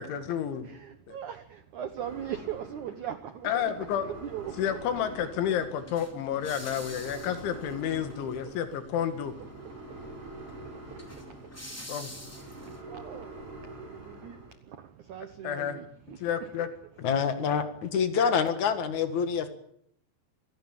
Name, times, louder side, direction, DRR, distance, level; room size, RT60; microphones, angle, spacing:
voice 1, 0.0-0.7 1.1-1.2 3.5-4.1 4.6-9.3 11.9-12.1 15.4-15.8 16.2-16.7, left 9 dB, 85° left, 9 dB, 4.3 m, -30 dB
voice 2, 0.6-4.6 8.2-9.1 9.4-16.7 17.3-17.6, right 10 dB, 80° right, 10 dB, 1.7 m, -42 dB
sound 1, 2.0-14.5, right 2 dB, 30° right, 5.7 m, -46 dB
sound 2, 4.4-12.8, equal, 5° left, 2.1 m, -48 dB
voice 3, 17.0-19.5, left 6 dB, 55° left, 9 dB, 2.3 m, -26 dB
26.0 x 17.0 x 8.8 m, 0.73 s
omnidirectional pair, 5.3 m